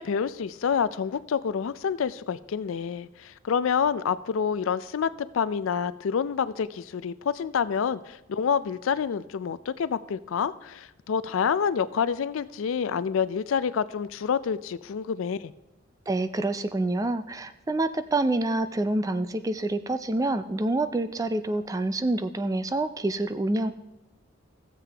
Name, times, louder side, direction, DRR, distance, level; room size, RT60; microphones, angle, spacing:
voice 1, 0.0-15.5, left 7 dB, 75° left, 16 dB, 0.4 m, -28 dB
voice 2, 16.1-23.7, right 2 dB, 15° right, 11 dB, 0.3 m, -27 dB
14.5 x 7.5 x 3.4 m, 0.95 s
head